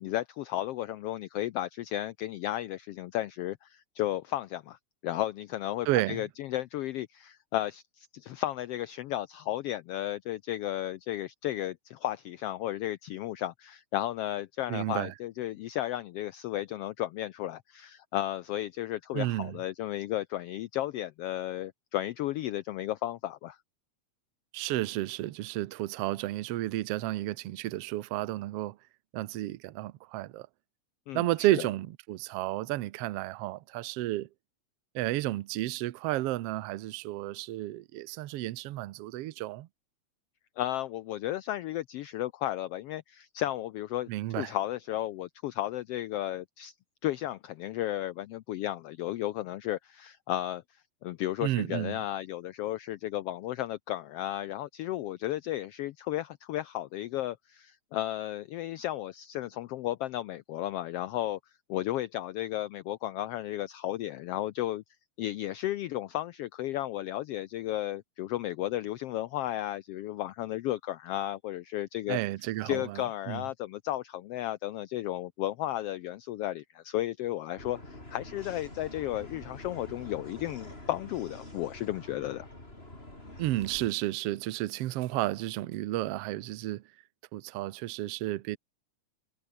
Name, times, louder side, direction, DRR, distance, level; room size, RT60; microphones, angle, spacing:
voice 1, 0.0-4.8 5.0-23.6 31.1-31.7 40.6-44.1 44.4-46.7 47.0-50.6 51.0-61.4 61.7-64.8 65.2-72.2 72.6-82.5, left 14 dB, 85° left, 1.3 m, -34 dB
voice 2, 5.8-6.2 14.7-15.1 19.1-19.6 24.5-28.8 29.1-30.5 31.1-34.3 34.9-39.7 44.1-44.5 51.4-52.0 72.1-73.4 83.4-86.8 87.3-88.6, right 16 dB, 70° right, 1.6 m, -32 dB
sound 1, 77.6-83.9, left 1 dB, 20° left, 6.2 m, -46 dB
omnidirectional pair, 3.4 m